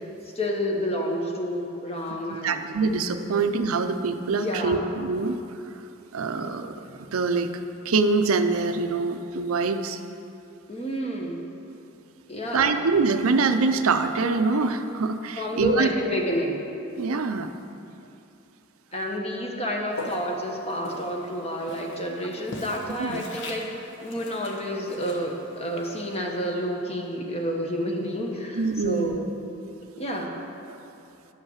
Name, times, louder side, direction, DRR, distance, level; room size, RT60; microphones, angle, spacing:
voice 1, 0.3-2.7 3.3-3.4 4.4-4.9 10.7-11.4 12.3-12.8 15.4-16.6 18.9-29.3 30.0-30.3, equal, 30° left, 1 dB, 1.2 m, -29 dB
voice 2, 2.4-5.4 6.1-7.5 7.8-10.0 12.5-15.9 17.0-17.5 23.0-23.2 28.6-29.2 30.7-30.8, right 4 dB, 80° right, 8 dB, 0.6 m, -24 dB
Walk footsteps, 19.9-27.0, left 2 dB, 60° left, 1.2 m, -42 dB
11.0 x 5.6 x 7.2 m, 2.7 s
head